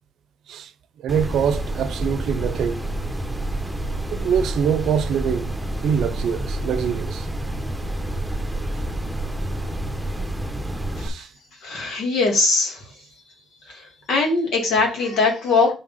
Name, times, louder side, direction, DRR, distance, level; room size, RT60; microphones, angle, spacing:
voice 1, 1.0-2.8 4.1-5.5 5.8-7.3 11.0-11.3, right 8 dB, 75° right, 0.6 m, -24 dB
sound 1, 1.1-11.1, right 1 dB, 5° right, 1.2 m, -28 dB
voice 2, 11.6-12.8 13.7-15.7, left 3 dB, 75° left, 2.5 m, -21 dB
5.7 x 3.6 x 5.6 m
cardioid pair, 90°, 0 cm